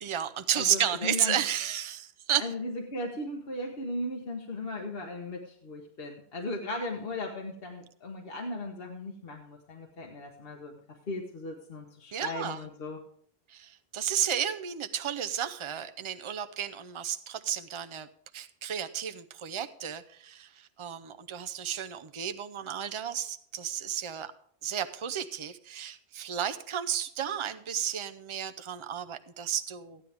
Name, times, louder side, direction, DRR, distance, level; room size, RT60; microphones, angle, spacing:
voice 1, 0.0-2.5 12.1-12.6 13.5-18.1 18.3-24.3 24.6-30.0, right 9 dB, 35° right, 9 dB, 0.6 m, -32 dB
voice 2, 0.5-1.4 2.4-10.8 11.1-13.0, left 2 dB, 65° left, 1 dB, 1.4 m, -37 dB
15.0 x 10.0 x 3.5 m, 0.64 s
omnidirectional pair, 1.1 m